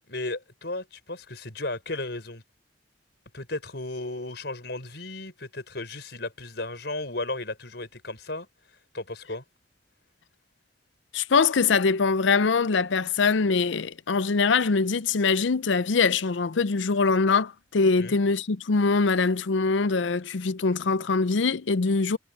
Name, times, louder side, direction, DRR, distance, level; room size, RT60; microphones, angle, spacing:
voice 1, 0.1-2.4 3.3-8.5 8.9-9.4 18.0-18.2, left 2 dB, 60° left, 5.1 m, -34 dB
voice 2, 11.1-22.2, left 4 dB, 80° left, 0.6 m, -23 dB
head